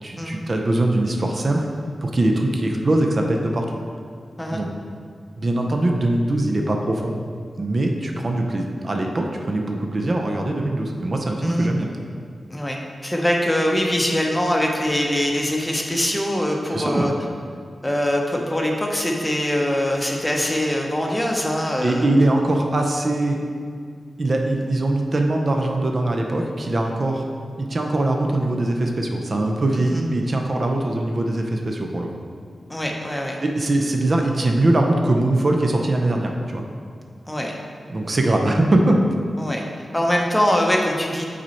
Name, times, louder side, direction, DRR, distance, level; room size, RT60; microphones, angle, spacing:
voice 1, 0.0-1.7 2.0-3.8 4.5-4.7 5.4-7.2 7.6-11.9 16.7-17.1 21.8-23.4 24.2-27.3 27.6-32.1 33.4-36.6 37.9-39.0, right 1 dB, 45° right, 2 dB, 0.6 m, -22 dB
voice 2, 13.0-17.1 17.8-22.1 29.8-30.0 32.7-33.4 37.3-37.5 39.4-39.6 39.9-41.2, equal, 10° left, 0 dB, 0.8 m, -23 dB
6.0 x 4.1 x 4.3 m, 2.1 s
cardioid pair, 60°, 0 cm